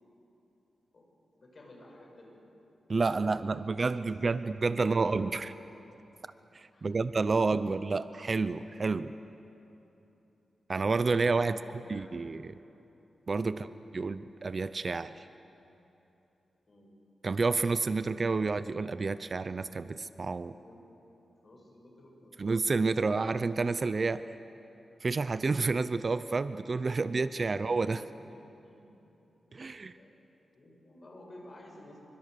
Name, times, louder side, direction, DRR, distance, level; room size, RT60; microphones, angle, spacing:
voice 1, 1.3-2.4 3.9-5.5 6.7-7.2 7.8-7.9 11.4-12.4 13.4-13.8 16.7-17.0 20.6-20.8 21.4-23.0 27.5-29.0 29.8-30.1 30.5-32.1, left 1 dB, 40° left, -1 dB, 7.1 m, -54 dB
voice 2, 2.9-5.5 6.5-9.1 10.7-11.6 11.9-12.5 13.3-13.7 13.9-15.2 17.2-20.6 22.4-24.2 25.0-28.0 29.5-29.9, right 4 dB, 40° right, 13 dB, 0.6 m, -29 dB
27.5 x 25.0 x 6.8 m, 3.0 s
wide cardioid pair, 100°, 0 cm